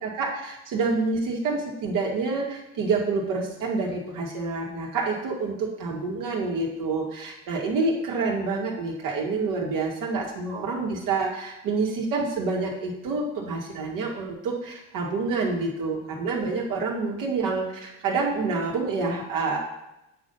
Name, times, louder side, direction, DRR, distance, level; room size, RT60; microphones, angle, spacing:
voice 1, 0.0-19.6, right 3 dB, 70° right, -1 dB, 2.3 m, -27 dB
8.7 x 4.0 x 5.7 m, 0.89 s
supercardioid pair, 75°, 34 cm